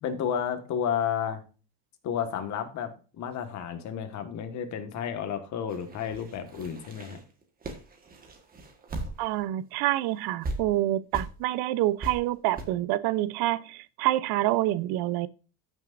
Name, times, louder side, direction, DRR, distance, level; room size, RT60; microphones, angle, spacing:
voice 1, 0.0-1.4 2.0-2.9 3.2-7.2, left 8 dB, 45° left, 1.6 m, -31 dB
sound 1, 5.7-9.5 9.8-9.9 10.4-10.6 11.1-11.3 12.0-12.1 12.6-12.7, right 2 dB, 25° right, 1.4 m, -37 dB
voice 2, 9.2-15.3, right 15 dB, 75° right, 0.6 m, -27 dB
14.5 x 6.3 x 2.5 m
cardioid pair, 170°, 38 cm